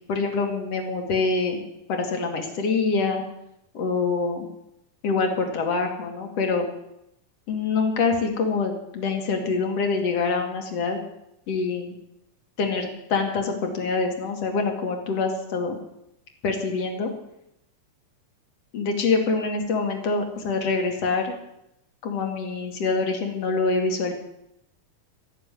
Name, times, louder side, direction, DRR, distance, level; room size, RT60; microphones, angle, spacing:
voice 1, 0.1-1.6 1.9-3.2 3.7-4.5 5.0-6.7 7.5-11.0 11.5-12.0 12.6-15.8 16.4-17.1 18.7-21.3 22.0-24.1, left 4 dB, 50° left, 3 dB, 2.7 m, -25 dB
15.0 x 6.7 x 10.0 m, 0.83 s
omnidirectional pair, 4.0 m